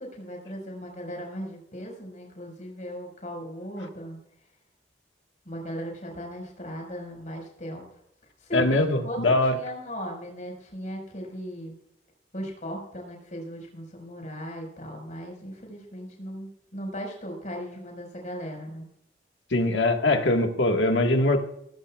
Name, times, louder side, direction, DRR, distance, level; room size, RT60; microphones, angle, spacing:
voice 1, 0.0-4.2 5.5-7.8 8.4-11.8 12.3-18.9, equal, 40° left, 1 dB, 5.2 m, -37 dB
voice 2, 8.5-9.6 19.5-21.4, left 2 dB, 80° left, 4 dB, 1.7 m, -22 dB
18.0 x 15.5 x 2.4 m, 0.78 s
head